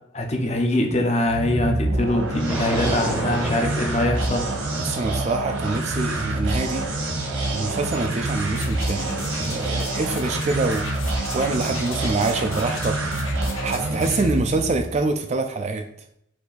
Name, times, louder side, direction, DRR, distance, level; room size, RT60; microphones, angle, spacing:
voice 1, 0.1-4.5, left 1 dB, 35° left, 3 dB, 0.7 m, -23 dB
sound 1, 1.2-15.0, right 2 dB, 80° right, 1.2 m, -27 dB
sound 2, 2.5-8.6, right 1 dB, 5° right, 0.7 m, -35 dB
voice 2, 4.8-6.8 7.5-9.1 9.4-10.8 11.3-13.0 13.6-15.8, right 3 dB, 35° right, 5 dB, 0.3 m, -25 dB
sound 3, 8.1-14.4 14.9-15.0, left 4 dB, 85° left, 0.7 m, -37 dB
4.5 x 2.7 x 4.0 m, 0.74 s
head